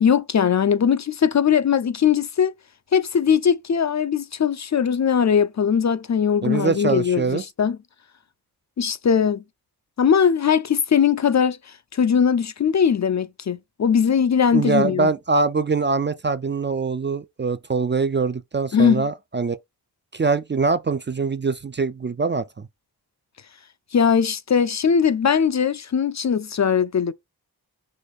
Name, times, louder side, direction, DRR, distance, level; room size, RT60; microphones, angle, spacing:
voice 1, 0.0-2.5 2.9-7.8 8.8-9.4 10.0-11.6 11.9-15.1 18.7-19.1 23.9-27.1, left 7 dB, 45° left, 0.4 m, -20 dB
voice 2, 6.4-7.4 14.5-19.6 20.1-22.4, right 4 dB, 30° right, 0.4 m, -23 dB
5.0 x 2.5 x 4.0 m
wide cardioid pair, 60°, 39 cm